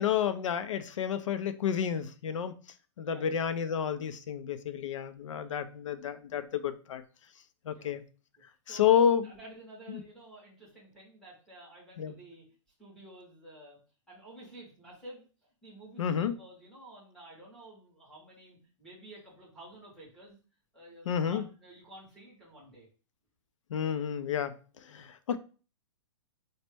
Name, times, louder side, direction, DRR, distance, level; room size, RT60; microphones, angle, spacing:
voice 1, 0.0-2.5 3.0-7.0 7.7-8.0 8.7-9.3 9.9-10.0 12.0-12.1 16.0-16.3 21.1-21.4 23.7-24.5 24.9-25.4, left 8 dB, 85° left, 0.5 m, -30 dB
voice 2, 3.0-3.4 7.7-7.9 8.7-12.4 12.8-13.8 14.1-15.2 15.6-20.4 20.7-22.9, right 1 dB, 5° left, 0.8 m, -51 dB
4.0 x 2.1 x 3.3 m
hypercardioid pair, 180°, 16 cm